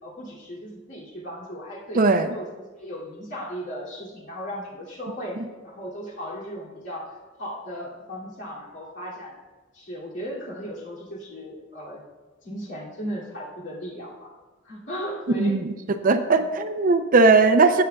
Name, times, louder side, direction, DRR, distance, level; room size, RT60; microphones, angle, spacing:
voice 1, 0.0-9.3 9.7-12.0 12.4-14.3 14.6-15.6 16.3-16.5, equal, 65° left, -5 dB, 2.6 m, -36 dB
voice 2, 1.9-2.3 15.4-15.7 16.0-17.8, right 3 dB, 45° right, 8 dB, 0.5 m, -18 dB
17.5 x 6.7 x 2.3 m, 1.3 s
head